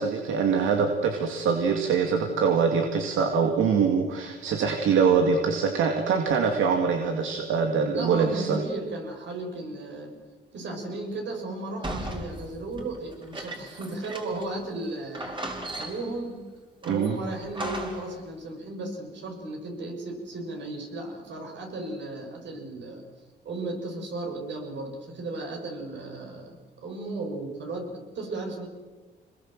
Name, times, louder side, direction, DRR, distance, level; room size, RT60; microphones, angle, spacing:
voice 1, 0.0-8.6 16.9-17.2, right 5 dB, 80° right, 4 dB, 2.4 m, -24 dB
voice 2, 7.9-10.1 10.5-15.4 15.7-16.4 16.8-23.0 23.4-28.7, right 2 dB, 65° right, 3 dB, 6.7 m, -35 dB
sound 1, 11.8-14.6 14.8-14.9 15.1-16.2 16.8-18.2, right 1 dB, 25° right, 4.7 m, -37 dB
27.0 x 21.0 x 7.6 m, 1.3 s
cardioid pair, 90°, 20 cm